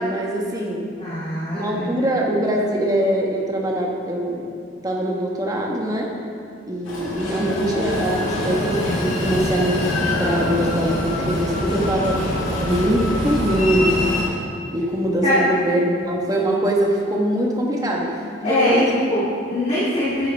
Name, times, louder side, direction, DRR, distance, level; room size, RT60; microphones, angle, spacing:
voice 1, 0.0-0.9 1.5-4.5 4.8-6.1 6.7-9.9 10.2-14.0 14.7-19.0, right 1 dB, 20° right, -1 dB, 1.2 m, -23 dB
voice 2, 1.0-1.7 2.0-2.1 15.2-15.4 18.4-20.3, left 1 dB, 35° left, -13 dB, 2.5 m, -22 dB
Train, 6.8-14.2, left 1 dB, 85° left, 2.7 m, -24 dB
10.5 x 10.5 x 3.4 m, 2.3 s
head